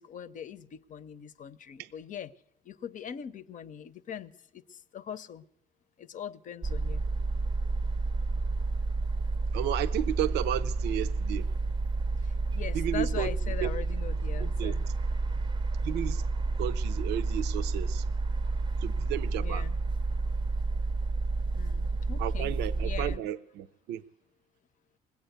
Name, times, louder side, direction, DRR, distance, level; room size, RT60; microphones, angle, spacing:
voice 1, 0.0-2.3 2.6-5.4 6.0-7.0 12.2-14.9 19.4-19.8 21.5-22.5 22.8-23.3, left 8 dB, 50° left, 0.7 m, -41 dB
sound 1, 6.6-23.2, right 3 dB, 25° right, 0.6 m, -30 dB
voice 2, 9.5-11.5 12.7-13.3 13.6-13.7 14.4-14.7 15.8-16.2 16.6-18.0 18.8-19.6 22.2-24.0, right 12 dB, 85° right, 0.6 m, -33 dB
20.5 x 8.6 x 8.1 m
cardioid pair, 110°, 17 cm